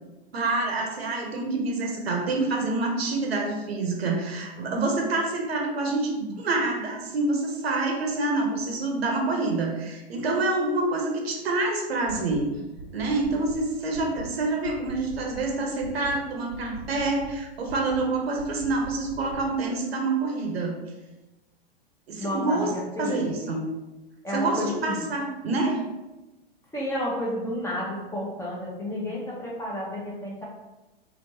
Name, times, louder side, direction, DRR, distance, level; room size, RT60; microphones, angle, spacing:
voice 1, 0.3-12.6 12.9-20.7 22.1-22.7 23.0-23.6 24.3-25.8, right 2 dB, 75° right, 1 dB, 0.8 m, -27 dB
sound 1, 12.1-12.5 12.8-13.6 13.9-14.3 14.6-15.5 15.8-16.2 16.5-17.4 17.7-18.1 18.4-19.5, right 4 dB, 40° right, 0.6 m, -42 dB
voice 2, 22.2-23.4 24.2-25.0 26.7-30.4, left 1 dB, 10° left, -5 dB, 0.8 m, -31 dB
3.4 x 2.6 x 2.7 m, 1.1 s
hypercardioid pair, 110°, 31 cm